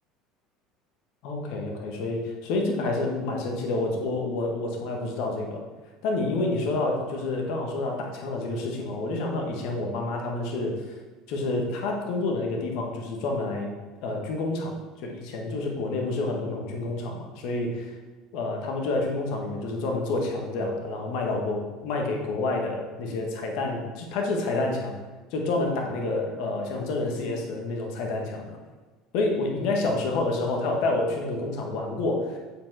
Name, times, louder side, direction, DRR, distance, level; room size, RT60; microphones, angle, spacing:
voice 1, 1.2-5.6 6.0-10.8 11.3-13.7 14.0-17.9 18.3-25.0 25.3-28.6 29.1-32.4, left 2 dB, 65° left, 2 dB, 1.4 m, -28 dB
7.1 x 5.1 x 4.7 m, 1.3 s
hypercardioid pair, 70°, 0 cm